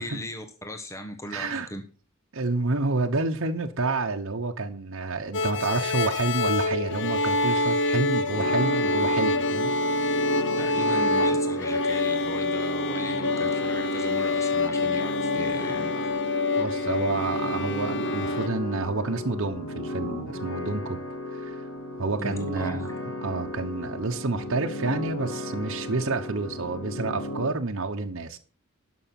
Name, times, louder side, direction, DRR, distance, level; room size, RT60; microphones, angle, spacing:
voice 1, 0.0-1.8 10.6-16.0 22.2-22.9, left 1 dB, 15° left, 1.0 m, -38 dB
voice 2, 1.3-1.7 2.3-9.7 15.9-16.0 16.5-21.0 21.3-21.6 22.0-22.9 23.2-28.4, right 3 dB, 65° right, 1.0 m, -29 dB
sound 1, 5.3-18.5, left 2 dB, 60° left, 0.9 m, -26 dB
sound 2, 8.3-27.5, left 1 dB, 80° left, 2.6 m, -35 dB
11.5 x 6.3 x 5.8 m
head